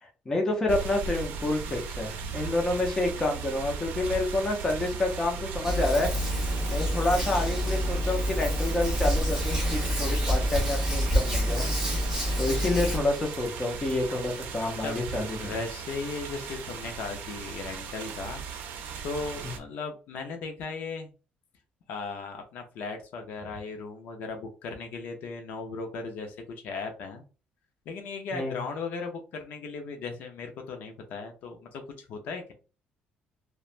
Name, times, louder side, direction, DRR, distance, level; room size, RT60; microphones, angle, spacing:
voice 1, 0.0-6.1 6.7-11.7 12.4-15.4 19.4-19.5 28.3-28.6, left 2 dB, 15° left, 1 dB, 0.6 m, -28 dB
sound 1, 0.7-19.6, right 6 dB, 85° right, 0.5 m, -37 dB
Hands, 5.6-13.0, equal, 5° right, 1.3 m, -27 dB
voice 2, 14.8-18.4 19.0-21.1 21.9-27.2 27.9-32.5, left 4 dB, 60° left, 5 dB, 0.5 m, -37 dB
3.1 x 2.1 x 2.4 m, 0.33 s
cardioid pair, 175°, 3 cm